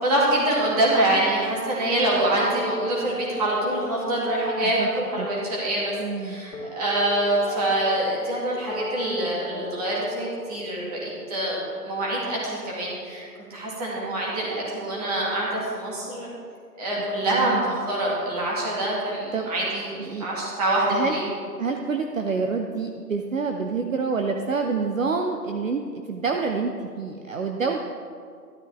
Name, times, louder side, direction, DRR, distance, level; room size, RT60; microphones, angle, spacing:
voice 1, 0.0-16.3 16.8-21.2, right 1 dB, 25° right, -5 dB, 2.2 m, -25 dB
sound 1, 2.2-12.2, left 3 dB, 45° left, 2.4 m, -37 dB
voice 2, 6.0-6.5 17.3-17.7 19.3-19.5 20.0-20.3 20.9-21.1 21.6-27.8, right 4 dB, 50° right, 4 dB, 0.8 m, -27 dB
13.5 x 12.0 x 3.5 m, 2.2 s
hypercardioid pair, 165°, 50 cm